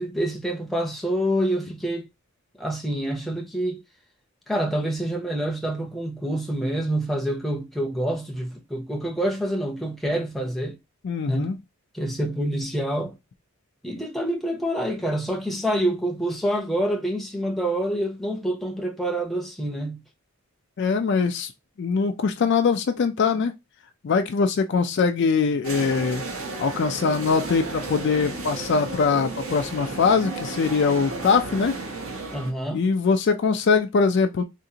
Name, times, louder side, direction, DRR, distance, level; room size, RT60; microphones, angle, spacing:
voice 1, 0.0-2.1 2.6-3.8 4.5-10.8 11.2-11.5 11.9-13.2 13.8-20.0 32.3-32.9, right 1 dB, ahead, 0.6 m, -27 dB
voice 2, 11.0-11.6 20.8-21.5 21.8-23.5 24.0-26.2 26.6-31.8 32.7-34.4, left 5 dB, 50° left, 0.3 m, -22 dB
sound 1, 25.6-32.5, right 3 dB, 65° right, 1.1 m, -33 dB
3.7 x 2.5 x 2.7 m
head